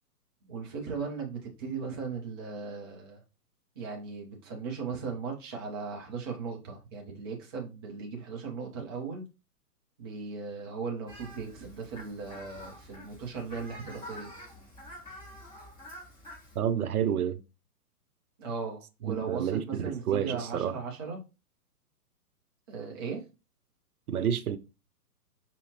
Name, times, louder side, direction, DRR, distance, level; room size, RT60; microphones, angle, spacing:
voice 1, 0.4-3.2 3.8-9.2 10.0-14.3 18.4-21.2 22.7-23.2, right 5 dB, 15° right, 0.4 m, -37 dB
Fowl, 11.1-16.6, left 1 dB, 10° left, 1.8 m, -47 dB
voice 2, 16.6-17.4 19.0-20.7 24.1-24.6, right 9 dB, 65° right, 0.6 m, -29 dB
5.1 x 2.7 x 2.8 m
figure-of-eight pair, 125°, 47 cm